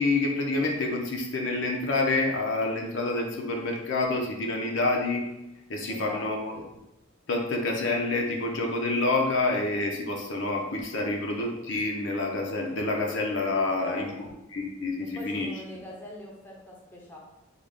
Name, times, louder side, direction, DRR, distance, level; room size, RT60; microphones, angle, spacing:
voice 1, 0.0-5.2 5.7-6.5 7.3-15.5, left 2 dB, 70° left, 0 dB, 0.6 m, -28 dB
voice 2, 5.9-6.7 13.7-14.3 15.0-17.2, left 1 dB, 10° left, -3 dB, 0.6 m, -43 dB
3.6 x 2.3 x 3.4 m, 0.90 s
head